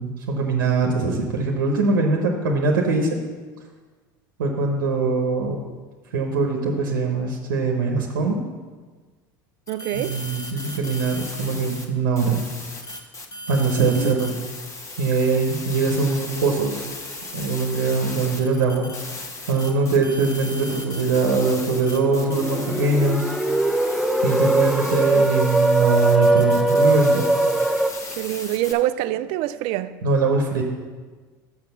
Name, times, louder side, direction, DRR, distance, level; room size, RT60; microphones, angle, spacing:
voice 1, 0.0-3.1 4.4-5.6 6.1-8.4 9.9-12.6 13.5-14.3 15.0-16.8 17.3-18.9 19.5-23.3 24.2-27.3 30.0-30.6, right 4 dB, 90° right, 0.9 m, -22 dB
sound 1, 9.7-11.8 12.2-28.7, left 2 dB, 30° left, 1.2 m, -36 dB
voice 2, 9.7-10.2 13.8-14.1 25.1-25.3 28.1-30.0, right 14 dB, 60° right, 0.4 m, -26 dB
sound 2, 21.7-27.9, right 1 dB, ahead, 0.6 m, -21 dB
6.1 x 5.9 x 7.0 m
hypercardioid pair, 90°, 11 cm